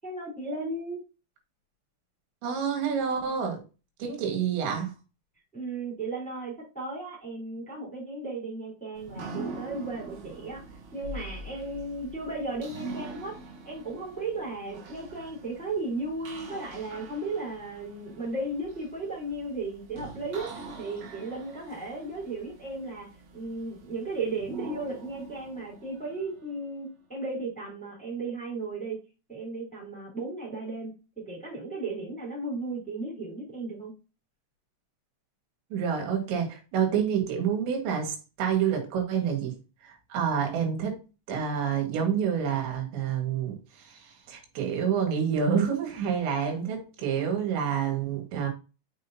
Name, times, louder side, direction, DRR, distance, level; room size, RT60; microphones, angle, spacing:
voice 1, 0.0-1.0 5.5-10.6 10.9-13.3 13.6-29.0 29.3-33.9, right 2 dB, ahead, 2.9 m, -35 dB
voice 2, 2.4-3.6 4.0-4.9 35.7-39.6 39.8-41.0 41.3-48.5, right 7 dB, 85° right, 4.1 m, -28 dB
sound 1, 8.9-26.8, right 3 dB, 60° right, 3.4 m, -44 dB
6.3 x 6.3 x 2.8 m
omnidirectional pair, 5.1 m